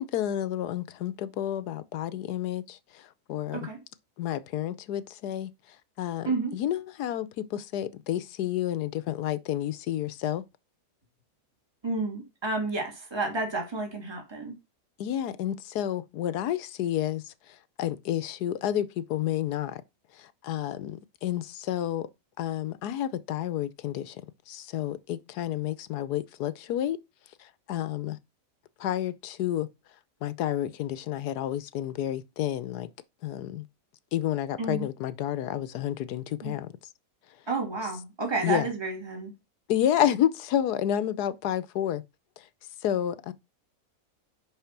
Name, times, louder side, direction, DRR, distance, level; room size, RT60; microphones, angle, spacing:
voice 1, 0.0-3.7 4.2-5.5 6.0-10.4 15.0-17.2 17.8-19.8 20.2-22.1 22.4-24.2 24.5-27.0 27.7-28.2 28.8-29.7 30.2-32.9 33.2-33.7 34.1-36.7 38.4-38.7 39.7-42.0 42.8-43.3, left 11 dB, 90° left, 1.3 m, -30 dB
voice 2, 11.8-14.5 34.6-34.9 36.4-36.5 37.5-39.3, right 3 dB, 15° right, 2.4 m, -31 dB
10.5 x 4.1 x 5.8 m
omnidirectional pair, 1.6 m